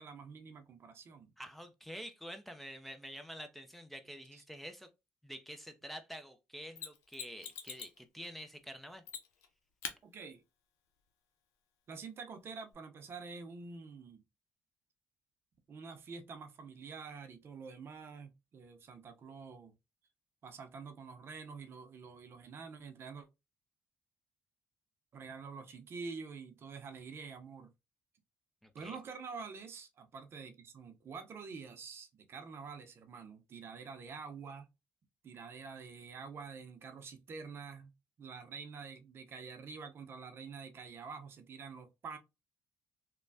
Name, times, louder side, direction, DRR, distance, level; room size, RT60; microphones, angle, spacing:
voice 1, 0.0-1.3 4.3-4.4 10.0-10.4 11.9-14.2 15.7-19.7 20.4-23.3 25.1-27.7 28.7-34.7 35.2-37.9 38.2-42.2, right 5 dB, 50° right, 0.7 m, -47 dB
voice 2, 1.4-4.9 5.2-9.0 28.6-29.0, equal, 5° left, 0.5 m, -48 dB
Mechanisms, 6.8-8.0 9.1-9.5 9.8-10.0 12.7-12.8, left 8 dB, 80° left, 0.6 m, -43 dB
3.1 x 2.2 x 2.6 m
supercardioid pair, 70°, 5 cm